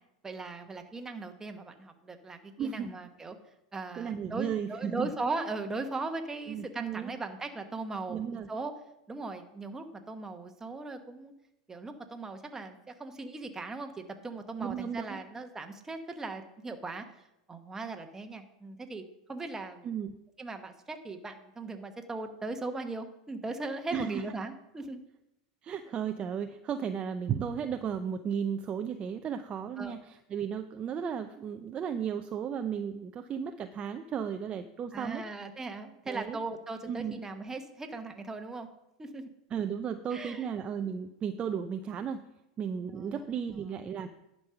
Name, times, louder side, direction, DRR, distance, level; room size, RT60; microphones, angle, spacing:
voice 1, 0.2-3.4 3.7-8.7 9.1-11.3 11.7-17.0 17.5-19.0 19.3-19.9 20.4-25.0 29.8-29.9 34.9-38.7 39.0-39.3 40.1-40.4 43.0-43.2, right 3 dB, 15° right, 6 dB, 1.2 m, -38 dB
voice 2, 2.6-2.9 4.0-5.1 6.5-7.1 8.1-8.5 14.6-15.2 19.8-20.1 23.9-24.2 25.6-35.2 36.1-36.4 36.9-37.2 39.5-42.2 42.6-44.1, right 7 dB, 30° right, 7 dB, 0.6 m, -34 dB
11.0 x 5.4 x 5.8 m, 0.88 s
hypercardioid pair, 100°, 3 cm